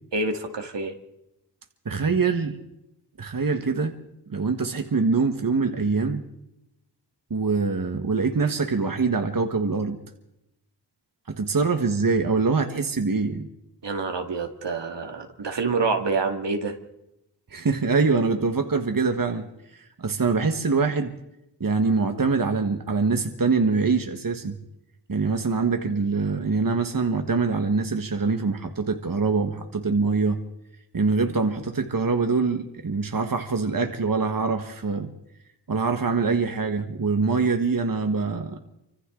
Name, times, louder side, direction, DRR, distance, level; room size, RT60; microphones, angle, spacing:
voice 1, 0.1-0.9 13.8-16.7, right 3 dB, 80° right, 4 dB, 2.2 m, -27 dB
voice 2, 1.8-2.6 3.2-3.9 4.3-6.2 7.3-10.0 11.3-13.5 17.5-19.5 19.7-21.2 21.6-24.6 25.1-30.4 30.9-35.1 35.7-38.6, right 4 dB, 50° right, 6 dB, 1.5 m, -24 dB
28.0 x 25.0 x 3.8 m, 0.87 s
wide cardioid pair, 75°, 42 cm